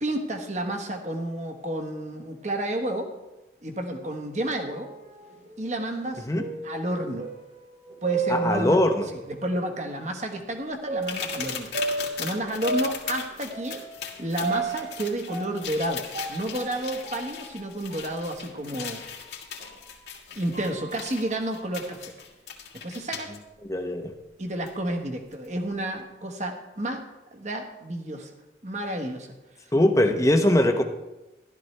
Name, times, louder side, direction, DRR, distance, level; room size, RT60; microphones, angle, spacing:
voice 1, 0.0-3.1 3.6-4.9 5.6-6.3 6.6-7.3 8.0-8.8 9.3-13.8 14.2-19.0 20.3-22.1 22.7-23.3 24.4-27.0 27.3-28.3 28.6-29.4, right 1 dB, 40° right, 4 dB, 1.3 m, -31 dB
sound 1, 4.7-9.3 9.8-9.9 10.9-19.9 20.3-22.2, right 3 dB, 80° right, 4.3 m, -35 dB
voice 2, 8.3-9.1 23.6-24.1 29.7-30.8, left 1 dB, 15° left, 5 dB, 0.8 m, -21 dB
sound 2, 11.0-23.4 24.7-24.8 25.3-25.5, left 7 dB, 65° left, 1.8 m, -38 dB
14.0 x 12.0 x 3.3 m, 1.0 s
head